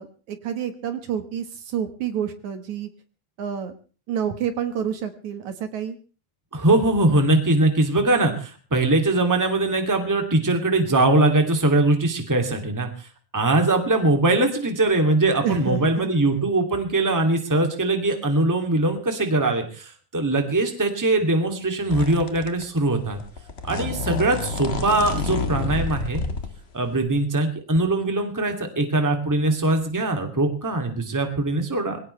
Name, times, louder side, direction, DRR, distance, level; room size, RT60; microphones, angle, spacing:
voice 1, 0.0-2.9 3.4-3.7 4.1-6.0 15.4-16.1, right 8 dB, 65° right, 8 dB, 2.8 m, -28 dB
voice 2, 6.5-13.1 13.3-23.2 23.7-26.2 26.7-32.0, right 2 dB, 5° right, 4 dB, 2.2 m, -21 dB
sound 1, 21.9-22.8 23.0-26.5 27.0-27.1, left 3 dB, 40° left, 0.9 m, -29 dB
23.0 x 17.5 x 3.3 m, 0.37 s
omnidirectional pair, 3.6 m